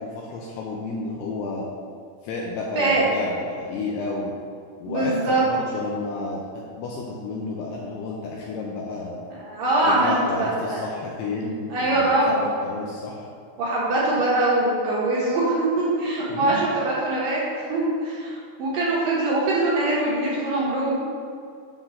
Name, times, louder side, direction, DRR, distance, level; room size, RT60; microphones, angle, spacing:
voice 1, 0.0-1.7 2.2-4.3 4.8-6.4 6.8-9.2 9.8-12.2 12.6-13.2 16.3-16.7, left 3 dB, 80° left, -2 dB, 2.5 m, -31 dB
voice 2, 4.9-5.5 9.3-10.8 11.7-12.5 13.6-21.0, right 2 dB, 65° right, -7 dB, 2.5 m, -23 dB
7.3 x 3.8 x 6.2 m, 2.4 s
omnidirectional pair, 5.3 m